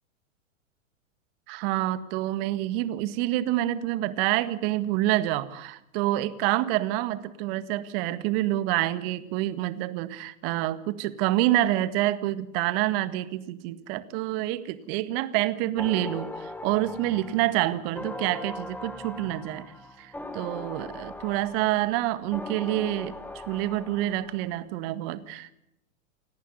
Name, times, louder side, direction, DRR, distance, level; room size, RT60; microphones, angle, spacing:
voice 1, 1.5-19.7 20.0-23.1 23.5-25.5, right 15 dB, 45° right, 12 dB, 1.9 m, -27 dB
sound 1, 15.8-24.5, left 1 dB, 5° left, 1.8 m, -40 dB
29.0 x 11.0 x 9.5 m, 0.82 s
hypercardioid pair, 100°, 40 cm